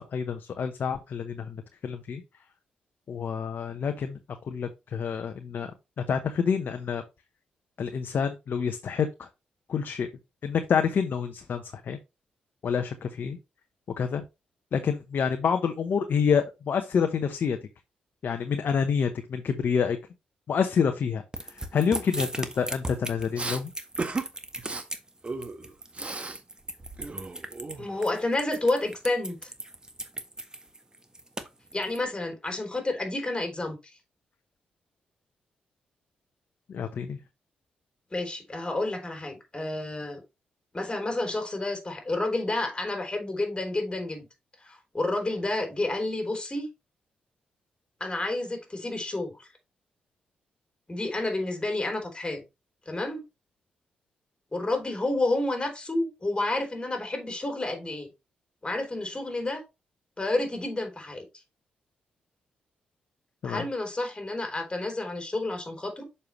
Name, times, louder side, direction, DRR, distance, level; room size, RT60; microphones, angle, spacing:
voice 1, 0.0-1.6 1.8-2.2 3.1-4.2 4.5-5.7 6.1-7.0 7.8-9.3 9.7-10.1 10.4-12.0 12.6-13.4 14.0-14.2 14.7-17.6 18.2-20.0 20.5-21.2 21.5-23.7 36.7-37.2 63.4-63.6, left 6 dB, 60° left, 0.9 m, -27 dB
sound 1, 21.3-32.0, right 1 dB, 20° right, 1.4 m, -37 dB
Respiratory sounds, 23.3-23.6 24.0-24.3 24.6-24.8 25.2-26.4 26.7-28.1, right 3 dB, 35° right, 1.3 m, -35 dB
voice 2, 27.8-29.4 31.7-33.8 38.1-40.2 40.7-44.3 44.6-46.7 48.0-49.5 50.9-52.4 52.9-53.2 54.5-58.1 58.6-59.6 60.2-61.2 63.4-66.0, left 2 dB, 25° left, 3.5 m, -30 dB
6.7 x 5.6 x 3.1 m
supercardioid pair, 50°, 4 cm